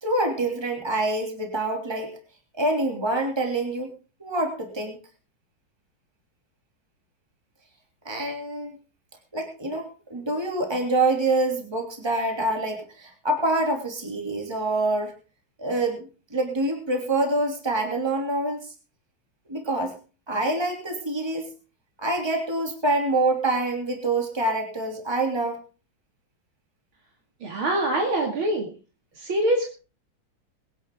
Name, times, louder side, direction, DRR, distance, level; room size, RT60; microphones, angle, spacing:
voice 1, 0.0-2.2 2.6-3.9 4.2-5.0 8.0-8.8 9.3-15.1 15.6-18.7 19.5-19.9 20.3-21.5 22.0-25.6, right 2 dB, 10° right, 2 dB, 3.0 m, -26 dB
voice 2, 27.4-28.7 29.2-29.7, right 1 dB, 75° right, 1 dB, 3.3 m, -24 dB
21.5 x 10.5 x 3.8 m, 0.34 s
omnidirectional pair, 2.3 m